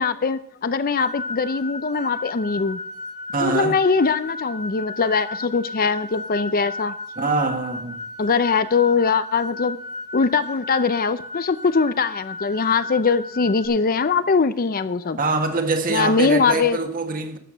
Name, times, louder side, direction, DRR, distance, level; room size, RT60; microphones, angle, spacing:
voice 1, 0.0-2.8 3.4-6.9 8.2-9.8 10.1-15.2 15.9-16.8, left 5 dB, 40° left, 0.5 m, -21 dB
sound 1, 1.0-13.7, left 2 dB, 75° right, 4.3 m, -35 dB
voice 2, 3.3-3.8 7.2-8.0 15.2-17.4, right 3 dB, 40° right, 1.6 m, -24 dB
12.5 x 8.1 x 6.3 m
head